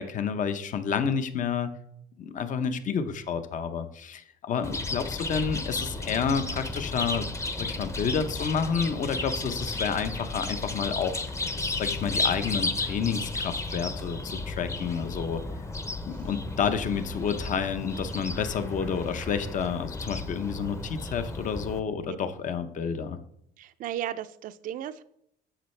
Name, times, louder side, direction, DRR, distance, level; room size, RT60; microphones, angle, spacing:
voice 1, 0.0-1.7 2.2-7.3 7.6-11.2 11.4-15.4 16.1-23.2, left 6 dB, 50° left, 10 dB, 0.8 m, -30 dB
Chirp tweet, 4.6-21.8, left 2 dB, 15° left, 0.8 m, -33 dB
voice 2, 23.6-25.0, right 11 dB, 55° right, 11 dB, 0.5 m, -35 dB
9.9 x 7.1 x 3.3 m, 0.71 s
cardioid pair, 110°, 17 cm